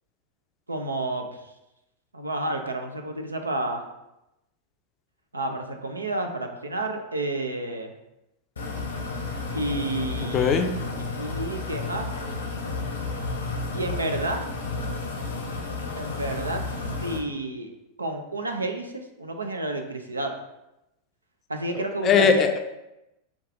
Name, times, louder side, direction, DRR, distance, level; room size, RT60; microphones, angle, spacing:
voice 1, 0.7-1.5 2.1-3.8 5.3-7.9 9.5-12.1 13.7-14.5 16.0-16.6 17.0-20.3 21.5-22.4, right 2 dB, 80° right, 5 dB, 0.5 m, -30 dB
sound 1, 8.6-17.2, left 3 dB, 70° left, 0.8 m, -32 dB
voice 2, 10.3-10.7 21.7-22.6, left 6 dB, 30° left, 5 dB, 0.4 m, -20 dB
5.2 x 2.3 x 3.6 m, 0.92 s
figure-of-eight pair, 90°, 0 cm